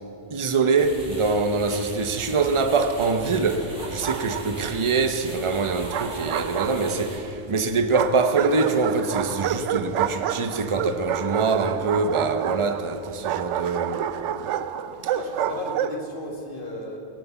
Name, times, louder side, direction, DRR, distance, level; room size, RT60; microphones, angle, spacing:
voice 1, 0.3-7.1 7.5-14.1, right 4 dB, 30° right, 0.8 m, -24 dB
sound 1, 0.8-7.2, right 1 dB, 50° right, 3.5 m, -40 dB
Bark, 3.8-4.7 5.6-7.2 7.9-16.0, right 9 dB, 90° right, 0.9 m, -29 dB
voice 2, 6.4-7.0 15.1-17.0, left 1 dB, 50° left, 2.2 m, -35 dB
18.0 x 9.2 x 7.1 m
omnidirectional pair, 1.2 m